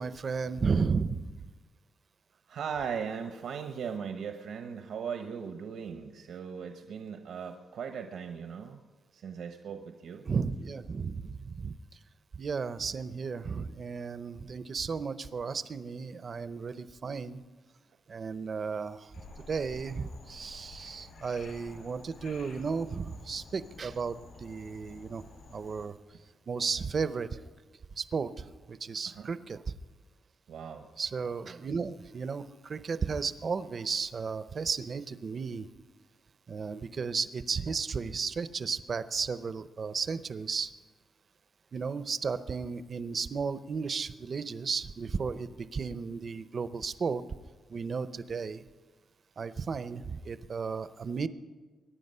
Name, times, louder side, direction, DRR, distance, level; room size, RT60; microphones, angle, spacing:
voice 1, 0.0-1.5 10.3-11.8 12.3-17.4 18.1-19.1 19.5-25.2 25.5-25.9 26.5-27.4 27.9-29.7 31.0-35.7 36.5-40.7 41.7-47.2 47.7-48.6 49.4-51.3, right 5 dB, 40° right, 13 dB, 0.6 m, -34 dB
voice 2, 2.5-8.8 9.1-10.2 29.1-29.3 30.5-30.9, right 7 dB, 80° right, 5 dB, 0.9 m, -38 dB
Frog, 19.1-25.8, left 3 dB, 90° left, 5.4 m, -51 dB
23.0 x 10.0 x 5.5 m, 1.3 s
wide cardioid pair, 160°, 0 cm